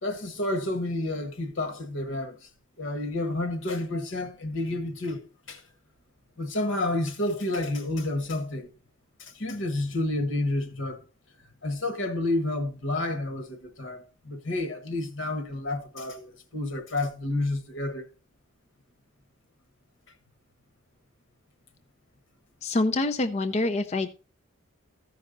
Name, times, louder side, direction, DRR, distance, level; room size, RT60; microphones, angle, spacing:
voice 1, 0.0-2.5 2.8-5.6 6.4-8.7 9.2-11.0 11.6-18.1, left 2 dB, 60° left, 1.2 m, -30 dB
voice 2, 22.6-24.1, left 2 dB, 30° left, 0.4 m, -26 dB
14.0 x 5.3 x 3.9 m
head